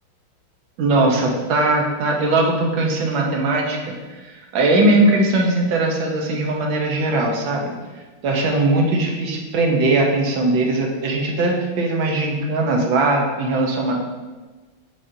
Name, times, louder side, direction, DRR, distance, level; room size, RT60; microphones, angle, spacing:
voice 1, 0.8-7.7 8.2-13.9, right 2 dB, 80° right, 0 dB, 1.7 m, -20 dB
7.3 x 4.9 x 2.7 m, 1.3 s
omnidirectional pair, 2.1 m